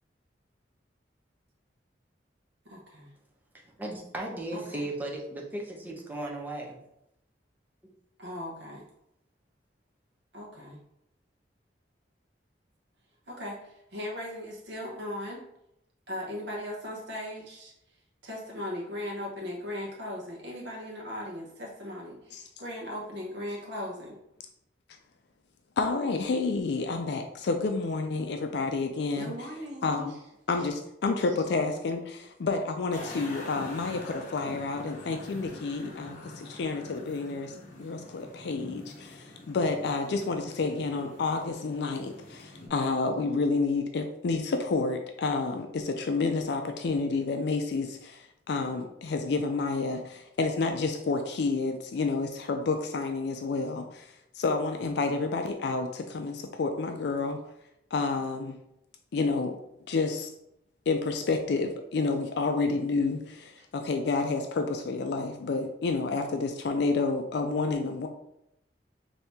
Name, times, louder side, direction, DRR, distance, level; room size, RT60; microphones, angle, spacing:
voice 1, 2.7-3.1 4.5-4.9 8.2-8.8 10.3-10.8 13.3-15.4 16.1-17.7 18.2-24.2 29.1-30.2, left 1 dB, 70° right, 0.9 m, -38 dB
voice 2, 3.8-6.8, right 1 dB, 10° right, 0.7 m, -36 dB
voice 3, 25.8-29.5 29.8-30.1 30.5-57.4 57.9-58.6 59.1-59.6 59.9-60.3 60.9-68.1, left 3 dB, 65° left, 0.4 m, -29 dB
sound 1, 32.9-42.7, left 1 dB, 45° left, 0.9 m, -45 dB
4.1 x 2.7 x 3.4 m
head